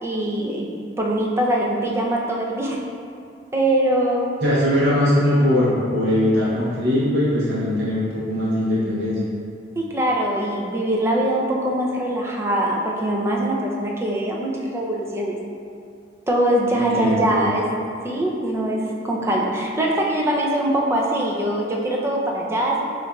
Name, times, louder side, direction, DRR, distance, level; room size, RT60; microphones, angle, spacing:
voice 1, 0.0-2.8 3.5-4.4 9.8-15.4 16.3-17.7 18.0-22.8, right 1 dB, 15° right, -2 dB, 0.4 m, -22 dB
voice 2, 4.4-9.2 16.7-17.5, left 1 dB, 65° right, -8 dB, 0.7 m, -20 dB
6.9 x 2.5 x 2.2 m, 2.4 s
head